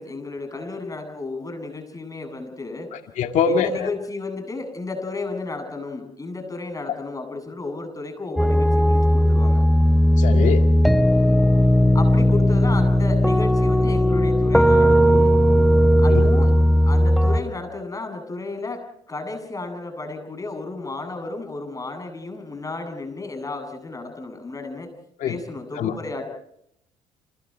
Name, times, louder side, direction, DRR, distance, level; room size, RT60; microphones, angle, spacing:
voice 1, 0.0-2.9 3.5-9.6 11.9-15.4 16.0-16.5 16.8-24.9 25.3-26.2, left 3 dB, 25° left, 6 dB, 8.0 m, -33 dB
voice 2, 2.9-3.9 10.2-10.7 16.1-16.3 25.2-25.4 25.8-26.0, left 6 dB, 65° left, 5 dB, 2.1 m, -23 dB
sound 1, 8.4-17.4, equal, ahead, 1.3 m, -17 dB
29.5 x 27.0 x 4.6 m, 0.75 s
supercardioid pair, 70°, 14 cm